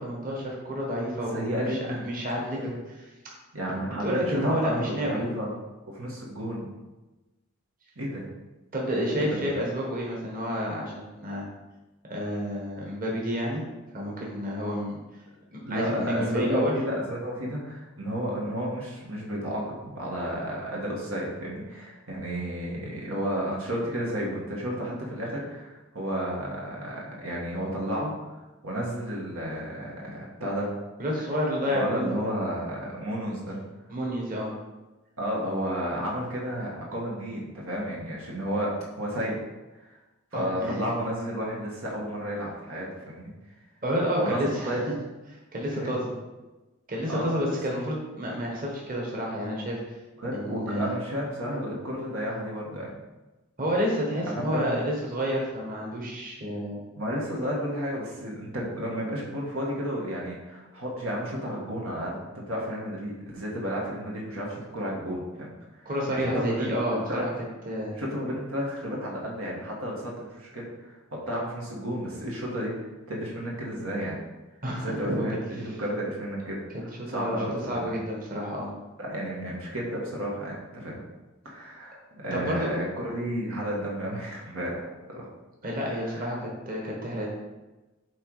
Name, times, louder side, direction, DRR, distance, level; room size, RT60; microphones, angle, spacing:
voice 1, 0.0-2.7 4.0-5.2 8.7-11.5 12.1-13.6 13.9-15.0 15.5-16.7 31.0-32.2 33.9-34.5 40.3-40.9 43.8-44.8 45.3-46.1 46.9-49.8 50.3-50.9 53.6-56.8 65.8-67.3 67.6-68.0 74.6-75.2 77.1-77.4 77.7-78.7 82.3-82.7 85.6-87.3, equal, 45° right, -3 dB, 1.5 m, -30 dB
voice 2, 1.3-2.1 2.4-2.7 3.5-5.5 5.9-6.7 7.9-8.2 9.1-9.5 15.6-28.3 28.6-30.7 31.7-33.6 35.2-39.4 39.8-40.0 40.3-43.3 44.2-44.8 45.7-45.9 47.1-47.4 50.2-52.9 54.2-54.8 56.9-65.9 66.1-67.2 67.9-74.2 74.8-78.0 79.0-81.0 81.4-85.3 86.0-86.3, equal, 85° right, -3 dB, 1.7 m, -32 dB
8.0 x 3.4 x 4.9 m, 1.1 s
head